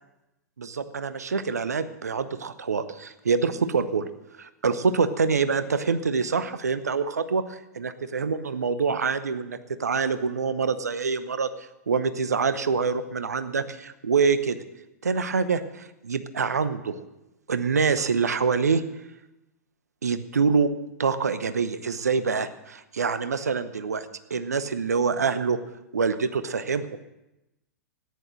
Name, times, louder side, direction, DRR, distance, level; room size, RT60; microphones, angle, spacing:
voice 1, 0.6-4.1 4.4-11.5 11.9-14.6 15.0-17.0 17.5-18.8 20.0-20.7 21.0-25.6 25.9-27.0, right 5 dB, 70° right, 13 dB, 0.8 m, -25 dB
13.5 x 10.5 x 6.3 m, 0.94 s
figure-of-eight pair, 100°, 9 cm